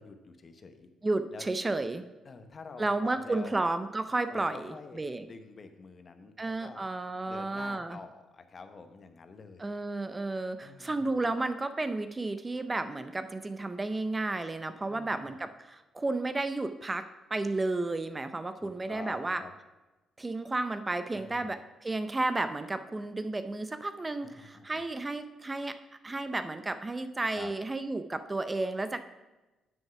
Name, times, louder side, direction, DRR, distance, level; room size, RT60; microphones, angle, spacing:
voice 1, 0.0-0.9 1.3-1.4 2.2-3.6 4.3-6.8 7.3-9.7 10.6-11.1 14.9-15.3 18.6-19.5 21.1-21.6 24.2-24.8 27.3-27.5, left 4 dB, 40° left, 8 dB, 0.9 m, -48 dB
voice 2, 1.0-2.0 2.8-5.2 6.4-8.0 9.6-19.4 20.2-25.8 26.0-29.0, right 2 dB, 20° right, 10 dB, 0.5 m, -32 dB
7.3 x 6.4 x 5.7 m, 1.1 s
cardioid pair, 90°, 0 cm